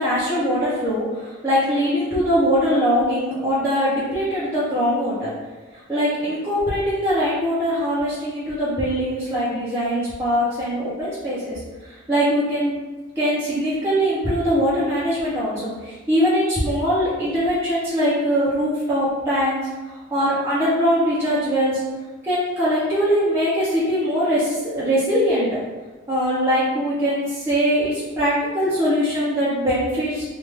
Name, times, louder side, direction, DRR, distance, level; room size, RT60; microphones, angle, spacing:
voice 1, 0.0-5.3 5.9-12.7 13.2-19.6 19.9-21.8 22.2-25.5 26.1-30.2, equal, 15° right, -11 dB, 0.6 m, -22 dB
3.1 x 2.4 x 3.3 m, 1.3 s
head